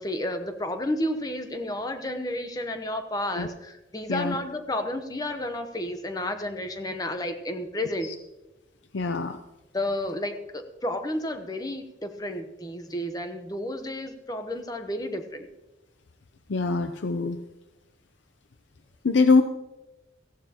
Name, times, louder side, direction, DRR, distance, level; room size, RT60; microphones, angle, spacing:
voice 1, 0.0-8.1 9.7-15.5, left 1 dB, 20° left, 7 dB, 0.9 m, -31 dB
voice 2, 8.9-9.4 16.5-17.4 19.0-19.4, left 4 dB, 80° left, 8 dB, 0.6 m, -23 dB
17.0 x 14.5 x 2.9 m, 1.0 s
head